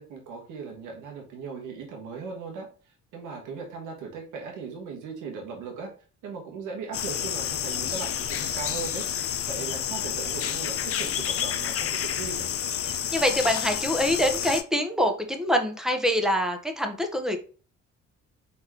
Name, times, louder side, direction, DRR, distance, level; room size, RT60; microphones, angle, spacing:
voice 1, 0.0-5.9 6.2-9.0 9.5-12.5, right 5 dB, 90° right, 1 dB, 1.5 m, -38 dB
sound 1, 6.9-14.6, left 9 dB, 50° left, 0.6 m, -29 dB
voice 2, 13.1-17.4, equal, ahead, 5 dB, 1.0 m, -25 dB
4.3 x 4.1 x 3.0 m, 0.38 s
cardioid pair, 90°, 30 cm